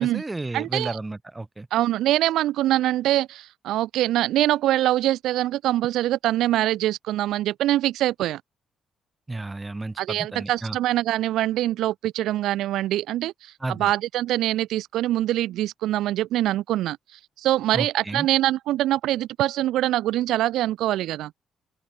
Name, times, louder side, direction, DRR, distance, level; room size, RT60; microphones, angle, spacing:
voice 1, 0.0-1.7 9.3-10.8 13.6-13.9 17.7-18.3, right 2 dB, 15° right, 0.5 m, -32 dB
voice 2, 0.5-1.0 1.7-8.4 10.0-21.3, right 14 dB, 85° right, 0.4 m, -24 dB
open air
cardioid pair, 90°, 0 cm